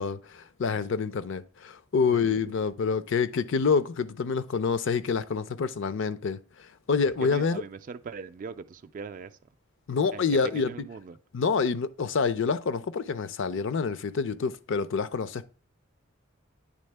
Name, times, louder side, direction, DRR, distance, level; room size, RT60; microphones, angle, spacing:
voice 1, 0.0-7.6 9.9-10.7 11.3-15.5, left 5 dB, 65° left, 0.5 m, -27 dB
voice 2, 7.2-9.3 10.1-11.2, right 5 dB, 40° right, 0.3 m, -40 dB
9.5 x 3.5 x 3.3 m
head